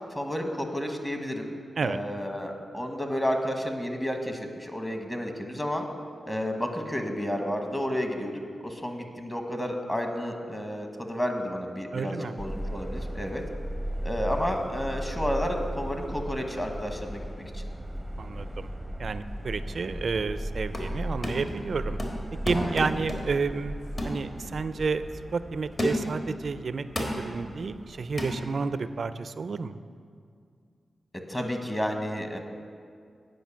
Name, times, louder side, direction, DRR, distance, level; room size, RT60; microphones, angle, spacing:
voice 1, 0.1-1.5 1.8-5.8 6.2-13.4 14.0-17.3 17.5-17.7 22.5-22.7 31.3-32.4, equal, 15° left, 4 dB, 1.2 m, -31 dB
voice 2, 11.9-12.4 18.2-18.7 19.0-22.0 22.4-23.7 24.0-25.1 25.3-29.8, right 4 dB, 65° right, 13 dB, 0.3 m, -30 dB
Subway metro underground, 12.4-28.5, equal, 5° right, 0.6 m, -37 dB
sound 1, 20.5-21.0 21.2-21.6 22.0-23.4 24.0-24.2 24.7-24.9 25.8-26.2 27.0-27.3 28.2-28.4, left 1 dB, 40° left, 1.7 m, -31 dB
9.3 x 5.1 x 7.2 m, 2.3 s
cardioid pair, 60°, 0 cm